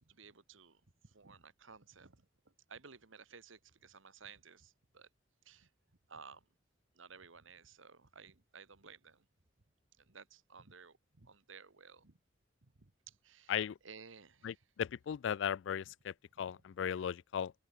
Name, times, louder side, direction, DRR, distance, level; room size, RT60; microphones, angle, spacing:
voice 1, 0.0-5.1 5.4-5.7 6.1-6.5 6.9-9.3 10.0-12.2 12.6-13.5 13.8-14.5, right 5 dB, 90° right, 1.5 m, -56 dB
voice 2, 14.4-17.5, left 8 dB, 75° left, 0.3 m, -37 dB
open air
head